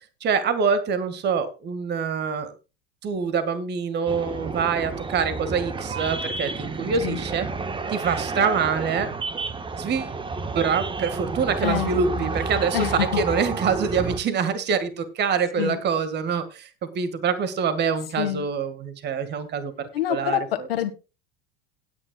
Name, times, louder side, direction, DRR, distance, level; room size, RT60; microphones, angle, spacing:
voice 1, 0.2-2.5 3.0-7.5 7.9-9.1 9.7-10.2 10.5-20.7, right 6 dB, 35° right, 11 dB, 1.9 m, -25 dB
sound 1, 4.1-14.2, right 4 dB, 15° right, 1.3 m, -30 dB
voice 2, 12.7-13.1 15.6-15.8 18.2-18.5 19.9-20.4 20.7-20.9, left 12 dB, 75° left, 9 dB, 1.8 m, -26 dB
18.0 x 9.7 x 2.3 m, 0.30 s
hypercardioid pair, 85°, 29 cm